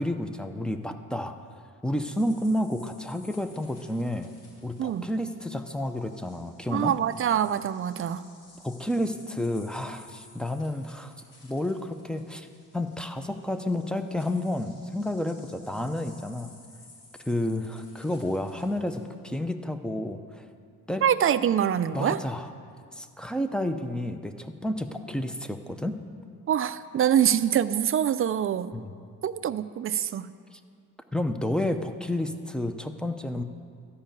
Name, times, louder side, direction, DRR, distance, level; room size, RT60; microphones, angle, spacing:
voice 1, 0.0-1.3 1.8-4.3 4.6-7.0 8.6-11.1 11.4-12.5 12.7-16.5 17.3-20.5 20.9-21.1 21.9-22.5 22.9-26.0 28.7-28.9 30.5-30.6 31.1-33.4, left 1 dB, 5° left, 8 dB, 0.6 m, -30 dB
sound 1, 2.0-19.0, left 2 dB, 85° left, 3.8 m, -56 dB
voice 2, 6.7-8.2 21.0-22.2 26.5-28.7 29.2-30.3, right 9 dB, 45° right, 14 dB, 0.4 m, -25 dB
12.5 x 5.6 x 8.9 m, 2.2 s
cardioid pair, 110°, 32 cm